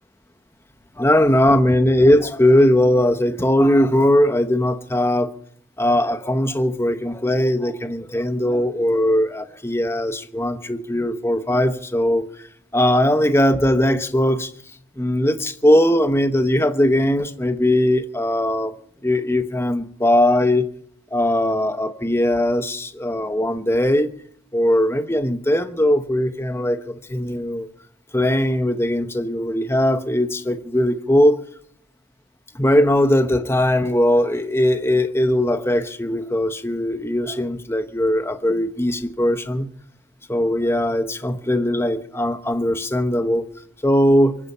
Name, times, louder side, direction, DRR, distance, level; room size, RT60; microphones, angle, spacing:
voice 1, 1.0-5.3 5.8-12.2 12.7-14.5 15.0-18.7 19.0-20.7 21.1-24.1 24.5-27.7 28.1-31.4 32.5-39.7 40.3-43.5 43.8-44.4, left 1 dB, 15° left, 1.0 m, -19 dB
24.0 x 10.0 x 5.6 m
head